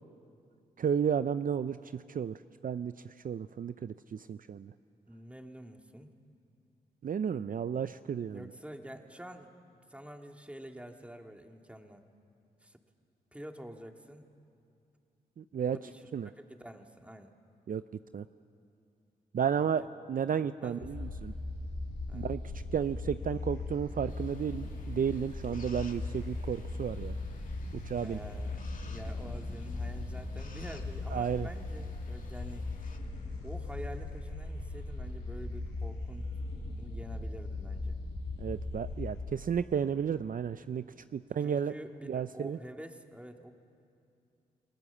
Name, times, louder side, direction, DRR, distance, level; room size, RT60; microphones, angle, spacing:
voice 1, 0.8-4.7 7.0-8.5 15.4-15.8 16.1-16.3 17.7-17.8 18.1-18.3 19.3-21.3 22.1-22.4 22.7-27.2 27.7-28.2 31.1-31.5 38.4-40.9 41.1-41.7 42.1-42.6, right 7 dB, 55° right, 13 dB, 0.6 m, -33 dB
voice 2, 5.1-6.1 8.3-9.5 9.9-12.0 12.6-12.8 13.3-14.3 15.7-17.3 19.5-19.7 20.3-21.1 22.1-22.3 28.0-32.7 33.4-36.4 36.8-38.0 41.4-43.5, equal, 5° right, 3 dB, 2.6 m, -47 dB
sound 1, 20.8-39.2, left 2 dB, 85° left, 6.8 m, -38 dB
sound 2, 24.1-33.0, left 3 dB, 50° left, 2.6 m, -55 dB
29.5 x 20.0 x 7.3 m, 2.5 s
supercardioid pair, 40°, 17 cm